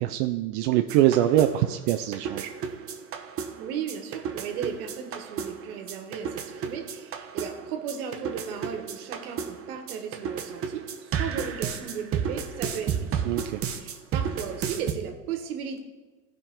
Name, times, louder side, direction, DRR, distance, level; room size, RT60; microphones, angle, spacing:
voice 1, 0.0-2.5 13.3-13.6, right 13 dB, 45° right, 6 dB, 0.6 m, -23 dB
sound 1, 0.9-14.9, right 7 dB, 30° right, 1.0 m, -33 dB
voice 2, 3.5-13.3 13.7-15.8, right 7 dB, 65° right, 5 dB, 1.6 m, -36 dB
15.5 x 5.2 x 3.7 m, 1.3 s
hypercardioid pair, 95°, 47 cm